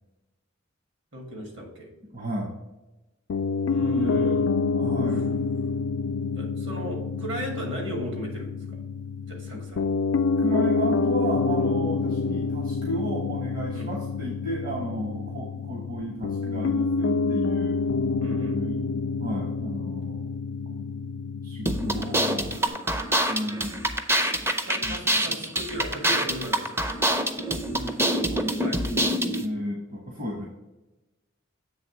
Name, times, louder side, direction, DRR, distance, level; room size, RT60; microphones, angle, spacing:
voice 1, 1.1-1.9 3.7-4.5 6.3-8.8 9.2-9.9 13.7-13.9 18.2-18.6 24.6-27.1 28.6-28.8, equal, 65° right, 1 dB, 2.0 m, -36 dB
voice 2, 2.0-2.6 3.8-4.4 4.7-5.3 9.5-9.6 10.3-17.8 18.5-18.9 19.2-20.3 20.7-22.8 23.3-23.8 24.8-25.5 27.5-29.1 29.4-30.4, equal, 45° right, -1 dB, 1.3 m, -34 dB
Piano, 3.3-22.7, left 4 dB, 85° left, 0.4 m, -27 dB
sound 1, 21.6-29.4, right 1 dB, 15° right, 0.5 m, -26 dB
7.7 x 3.5 x 6.0 m, 1.0 s
head